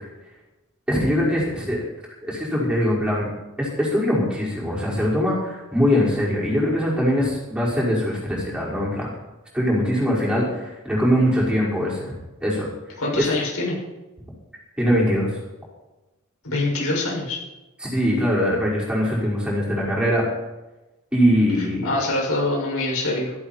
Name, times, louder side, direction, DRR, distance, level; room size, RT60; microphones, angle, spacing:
voice 1, 0.9-1.8 2.2-3.3 3.6-9.1 9.5-12.1 12.4-12.7 13.1-13.3 14.8-15.4 17.8-20.2 21.1-21.9, equal, 5° right, -5 dB, 5.4 m, -22 dB
voice 2, 13.0-13.8 16.4-17.4 21.8-23.3, left 2 dB, 75° left, -2 dB, 6.9 m, -24 dB
17.0 x 15.0 x 4.6 m, 1.0 s
head